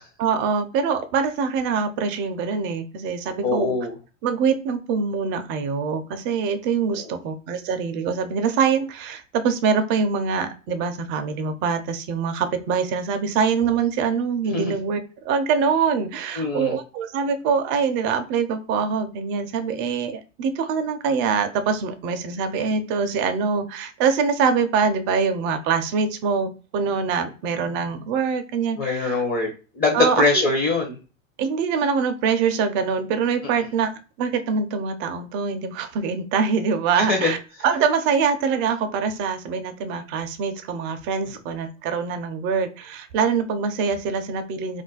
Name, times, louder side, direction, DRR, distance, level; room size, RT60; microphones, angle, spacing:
voice 1, 0.2-3.7 4.2-29.2 29.9-30.4 31.4-33.9 34.2-37.4 37.6-44.8, right 6 dB, 30° right, 8 dB, 0.4 m, -24 dB
voice 2, 3.4-3.9 6.9-7.1 14.5-14.7 16.4-16.7 28.8-31.0 37.0-37.3, left 3 dB, 25° left, 1 dB, 0.7 m, -23 dB
2.4 x 2.1 x 3.8 m, 0.33 s
hypercardioid pair, 125°, 40 cm